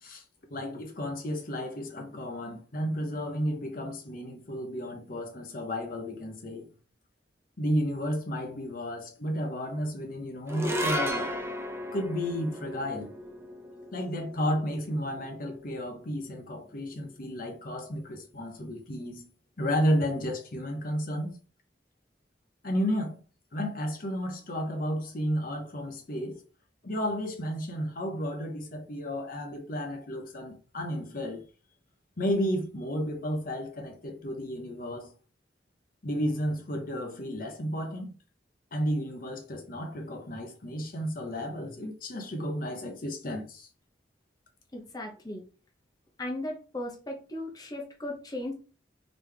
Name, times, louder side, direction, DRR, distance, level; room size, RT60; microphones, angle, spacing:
voice 1, 0.5-6.7 7.6-11.4 11.9-13.1 13.9-19.3 19.6-21.4 22.6-23.2 23.5-26.4 26.8-31.4 32.2-35.1 36.0-38.1 38.7-43.7, equal, 50° left, 0.9 m, -32 dB
sound 1, 10.5-17.0, equal, 15° right, 0.6 m, -35 dB
voice 2, 44.7-45.4 46.2-48.5, left 1 dB, 20° left, 0.8 m, -36 dB
4.0 x 3.3 x 3.3 m
head